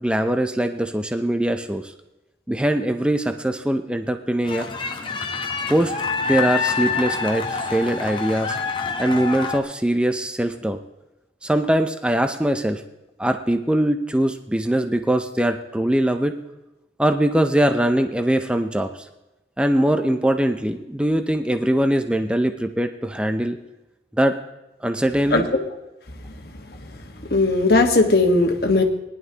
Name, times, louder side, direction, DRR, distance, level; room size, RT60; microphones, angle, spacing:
voice 1, 0.0-1.9 2.5-4.7 5.7-5.9 6.3-8.6 9.0-10.8 11.4-12.8 13.2-16.4 17.0-19.0 19.6-23.6 24.2-24.4 24.8-25.5, right 1 dB, 5° right, 7 dB, 0.5 m, -22 dB
sound 1, 4.4-9.6, left 5 dB, 30° left, 0.8 m, -27 dB
voice 2, 25.3-25.6 27.3-28.8, left 2 dB, 60° left, 3 dB, 1.4 m, -17 dB
18.5 x 11.0 x 2.9 m, 0.98 s
head